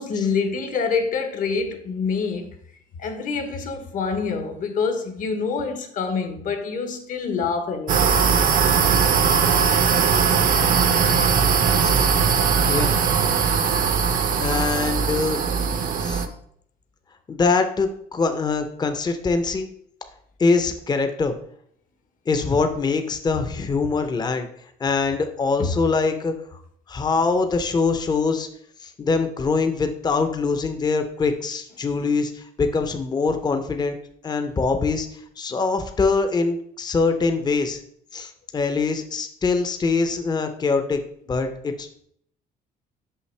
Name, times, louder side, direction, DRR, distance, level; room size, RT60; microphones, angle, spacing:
voice 1, 0.0-2.5 3.0-8.2 25.6-25.8, left 5 dB, 55° left, 1.0 m, -26 dB
sound 1, 7.9-16.3, right 6 dB, 55° right, 0.7 m, -20 dB
voice 2, 14.4-15.4 16.0-16.2 17.3-19.7 20.4-21.3 22.3-24.5 24.8-26.3 26.9-28.5 28.8-34.0 34.2-35.1 35.4-37.8 38.1-41.0 41.3-42.0, left 4 dB, 25° left, 0.6 m, -23 dB
5.8 x 5.6 x 3.3 m
cardioid pair, 110°, 17 cm